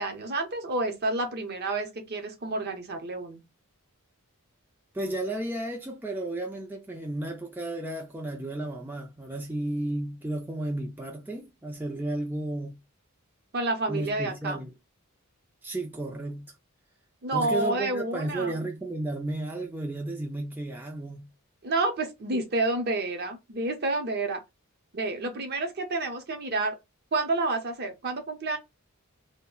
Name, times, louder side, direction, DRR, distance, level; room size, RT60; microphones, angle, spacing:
voice 1, 0.0-3.4 13.5-14.6 17.2-18.6 21.6-24.4 24.9-26.8 27.1-28.6, right 2 dB, 45° right, 0.7 m, -29 dB
voice 2, 4.9-12.8 13.9-14.7 15.6-16.5 17.3-21.3, right 2 dB, 10° right, 0.4 m, -33 dB
2.3 x 2.1 x 3.7 m
head